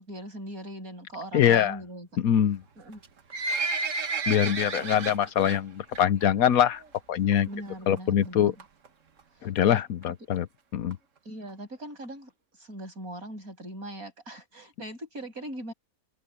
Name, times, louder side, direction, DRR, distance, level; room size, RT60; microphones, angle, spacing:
voice 1, 0.0-2.1 2.8-3.0 7.4-8.6 9.7-9.8 10.2-10.3 11.2-12.3 12.6-15.7, right 1 dB, 75° right, 8.5 m, -40 dB
voice 2, 1.3-1.8 2.2-2.6 4.3-6.8 7.1-7.5 7.9-8.5 9.4-10.5 10.7-11.0, left 10 dB, 75° left, 1.3 m, -23 dB
Livestock farm animals working animals, 2.9-5.6 5.9-6.2 6.5-6.6 7.3-7.4 7.7-7.8 8.0-8.1 8.6-8.9 9.4-9.5 9.8-9.9 10.0-10.1 10.3-10.4 10.9-11.0 11.5-11.6 12.0-12.1, right 3 dB, 60° right, 1.8 m, -31 dB
omnidirectional pair, 1.5 m